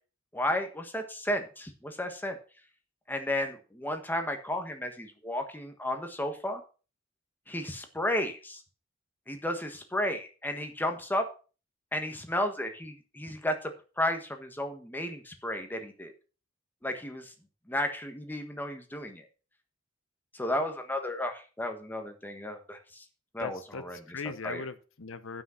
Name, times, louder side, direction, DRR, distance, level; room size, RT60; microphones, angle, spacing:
voice 1, 0.3-2.4 3.1-6.6 7.5-8.6 9.3-11.3 11.9-16.1 16.8-17.3 17.7-19.2 20.3-23.0 23.3-24.0 24.4-24.6, left 1 dB, 10° left, 6 dB, 1.4 m, -33 dB
voice 2, 23.4-25.4, left 5 dB, 75° left, 10 dB, 0.8 m, -39 dB
10.5 x 6.2 x 5.7 m, 0.35 s
head